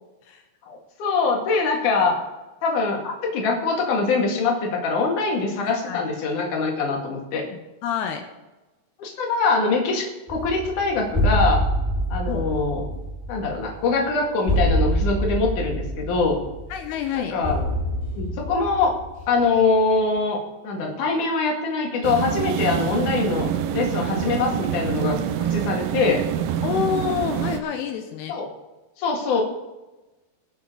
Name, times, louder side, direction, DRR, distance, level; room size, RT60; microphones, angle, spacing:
voice 1, 0.7-2.2 2.6-7.5 9.0-11.6 12.1-12.8 13.3-16.4 17.1-17.6 18.2-18.9 19.3-20.4 20.6-25.2 25.5-26.2 28.3-28.5 29.0-29.4, left 4 dB, 55° left, 0 dB, 3.3 m, -23 dB
voice 2, 5.6-6.0 6.9-7.2 7.5-8.2 12.3-12.5 16.7-17.4 26.6-28.4, left 8 dB, 85° left, 5 dB, 2.9 m, -28 dB
sound 1, 10.3-19.7, equal, 5° right, 4.4 m, -26 dB
sound 2, 22.0-27.6, right 10 dB, 80° right, 2.3 m, -26 dB
21.5 x 7.2 x 3.9 m, 1.1 s
omnidirectional pair, 4.7 m